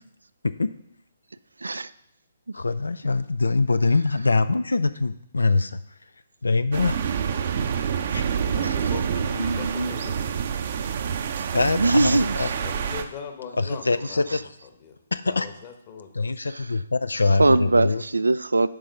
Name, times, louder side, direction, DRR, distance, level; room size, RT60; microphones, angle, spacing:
voice 1, 1.6-1.9 2.5-2.6 8.6-8.8 9.4-9.9 11.4-11.5 11.7-12.5 14.3-14.4 16.5-16.7 17.4-18.7, right 2 dB, 75° right, 16 dB, 0.3 m, -22 dB
voice 2, 2.5-5.8 6.4-7.0 8.1-8.2 11.5-12.1 12.4-12.5 13.6-14.4 15.1-15.5 16.1-18.0, left 3 dB, 75° left, 14 dB, 0.4 m, -23 dB
sound 1, 6.7-13.0, right 7 dB, 45° right, 0.6 m, -27 dB
voice 3, 8.4-10.3 12.6-14.4 14.8-15.0 15.2-16.3, left 6 dB, 35° left, 6 dB, 1.2 m, -39 dB
10.0 x 3.7 x 5.4 m, 0.76 s
figure-of-eight pair, 135°, 0 cm